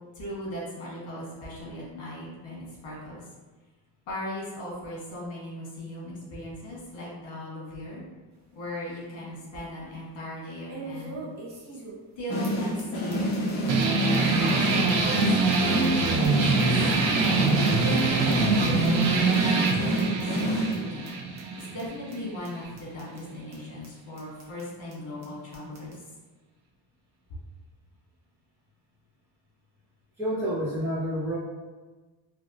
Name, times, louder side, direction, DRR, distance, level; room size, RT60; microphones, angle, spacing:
voice 1, 0.1-3.3 4.1-8.0 8.5-11.3 12.2-13.8 14.2-16.7 17.4-21.1 21.5-25.9, left 1 dB, 80° left, -5 dB, 1.5 m, -38 dB
sound 1, 8.3-8.4 8.9-9.0 10.7-12.1 12.4-12.5 12.8-12.9 13.1-13.5 13.8-13.9 14.1-14.2 14.5-16.6 16.9-18.0 18.3-18.4 18.6-19.0 19.3-19.4 19.6-19.7 20.0-20.4 20.7-20.8 21.0-21.1 21.4-21.8 22.1-22.2 22.4-22.5 22.8-23.2 23.5-23.6 23.8-23.9 24.2-24.6 24.9-25.0 25.2-25.3 25.5-26.0, right 3 dB, 35° right, 0.7 m, -44 dB
sound 2, 12.3-21.1, right 1 dB, 55° left, 0.7 m, -28 dB
sound 3, 13.7-22.7, right 3 dB, 85° right, 0.6 m, -24 dB
voice 2, 30.2-31.4, equal, 5° right, -12 dB, 1.3 m, -28 dB
3.4 x 2.9 x 2.6 m, 1.3 s
wide cardioid pair, 180°, 45 cm